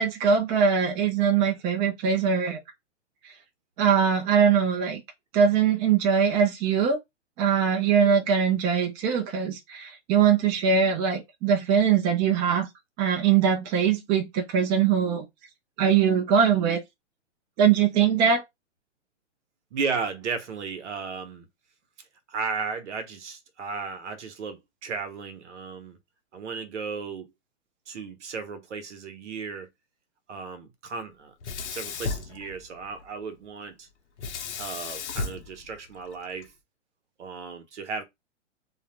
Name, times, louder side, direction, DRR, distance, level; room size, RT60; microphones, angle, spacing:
voice 1, 0.0-2.6 3.8-5.0 5.3-7.0 7.4-12.7 13.0-15.2 15.8-16.8 17.6-18.4, right 7 dB, 15° right, 0.4 m, -22 dB
voice 2, 19.7-21.5 22.3-26.0 26.3-27.3 27.9-29.7 30.3-31.3 31.7-33.9 34.6-36.5 37.2-38.0, right 5 dB, 80° right, 0.9 m, -34 dB
Sink (filling or washing), 31.4-33.1 34.2-36.5, left 4 dB, 70° left, 0.8 m, -35 dB
2.4 x 2.1 x 2.9 m
hypercardioid pair, 135°, 35 cm